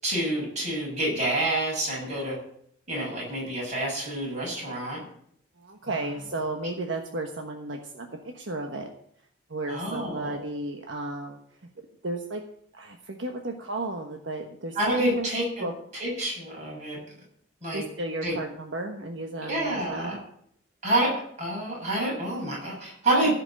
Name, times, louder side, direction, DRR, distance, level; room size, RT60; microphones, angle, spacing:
voice 1, 0.0-2.4 2.9-5.0 9.7-10.4 14.8-15.7 15.9-17.0 17.6-17.8 18.2-18.4 19.4-20.2 20.8-23.3, right 1 dB, 35° right, -4 dB, 7.2 m, -28 dB
voice 2, 5.6-8.9 9.5-11.4 12.0-12.4 12.7-15.3 15.6-15.7 17.7-20.2 23.1-23.3, right 2 dB, 70° right, 3 dB, 1.3 m, -33 dB
15.0 x 6.0 x 8.6 m, 0.68 s
head